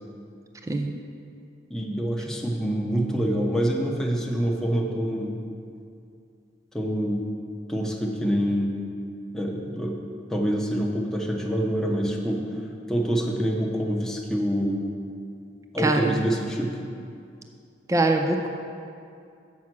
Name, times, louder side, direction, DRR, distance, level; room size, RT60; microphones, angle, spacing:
voice 1, 1.7-5.4 6.7-7.2 7.7-8.8 9.3-10.0 10.3-12.4 12.9-14.8 15.7-16.8, equal, 5° left, -2 dB, 0.8 m, -26 dB
voice 2, 15.8-16.2 17.9-18.5, right 2 dB, 15° right, 4 dB, 0.4 m, -23 dB
7.4 x 5.7 x 6.0 m, 2.5 s
head